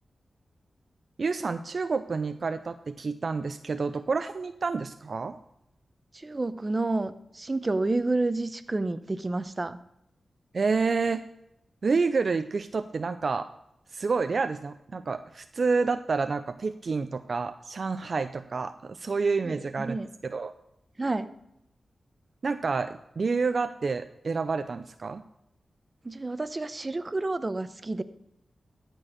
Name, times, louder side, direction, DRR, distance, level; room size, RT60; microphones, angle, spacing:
voice 1, 1.2-5.4 10.5-11.2 11.8-13.5 13.9-20.0 20.2-20.5 22.4-25.2, right 4 dB, 60° right, 10 dB, 0.5 m, -29 dB
voice 2, 6.1-9.8 19.4-20.1 21.0-21.3 26.0-28.0, right 2 dB, 35° right, 12 dB, 0.8 m, -29 dB
13.0 x 4.6 x 6.5 m, 0.81 s
cardioid pair, 60°, 0 cm